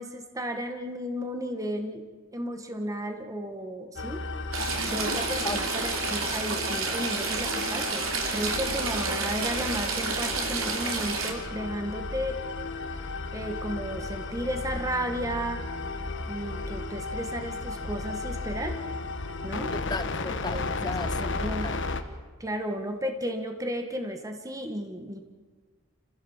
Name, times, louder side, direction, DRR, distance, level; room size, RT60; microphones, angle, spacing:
voice 1, 0.0-2.0 2.3-4.3 4.9-8.0 8.3-12.4 13.3-15.6 16.3-18.8 19.4-19.7 20.5-20.7 21.2-21.7 22.4-25.2, equal, 15° right, 5 dB, 1.7 m, -33 dB
sound 1, 4.0-22.0, left 3 dB, 65° left, 1.4 m, -34 dB
Stream / Trickle dribble, 4.5-11.3, right 4 dB, 80° right, 3.3 m, -30 dB
voice 2, 19.7-21.8, left 3 dB, 20° left, 12 dB, 0.8 m, -35 dB
28.0 x 15.5 x 7.4 m, 1.3 s
head